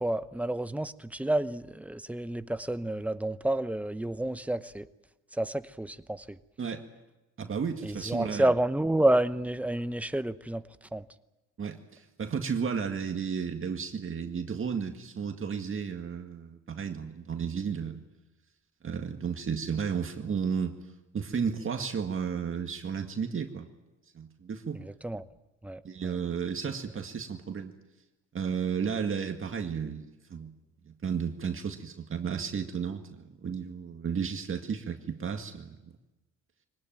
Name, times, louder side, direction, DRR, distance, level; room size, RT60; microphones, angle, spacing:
voice 1, 0.0-4.9 5.3-6.4 7.8-10.6 10.9-11.1 24.8-25.2 25.6-26.1, right 1 dB, 5° right, 12 dB, 0.9 m, -29 dB
voice 2, 7.4-8.5 11.6-18.0 18.8-20.8 21.1-23.7 24.1-24.8 25.8-27.7 28.3-30.5 30.8-35.8, right 6 dB, 45° right, 5 dB, 2.0 m, -33 dB
24.0 x 19.0 x 9.2 m, 1.1 s
cardioid pair, 90°, 30 cm